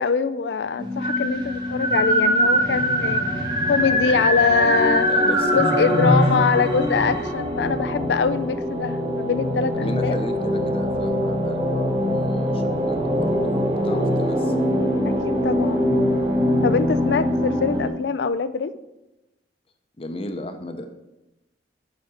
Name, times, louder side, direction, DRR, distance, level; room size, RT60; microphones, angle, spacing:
voice 1, 0.0-3.2 3.7-5.1 5.5-10.2 15.1-15.9 16.6-18.7, left 5 dB, 70° left, 14 dB, 0.4 m, -23 dB
sound 1, 0.8-17.9, equal, 25° right, 1.3 m, -22 dB
voice 2, 4.9-5.6 5.9-6.2 9.7-14.7 20.0-20.9, left 1 dB, 35° left, 7 dB, 0.8 m, -34 dB
7.3 x 5.0 x 6.3 m, 0.99 s
head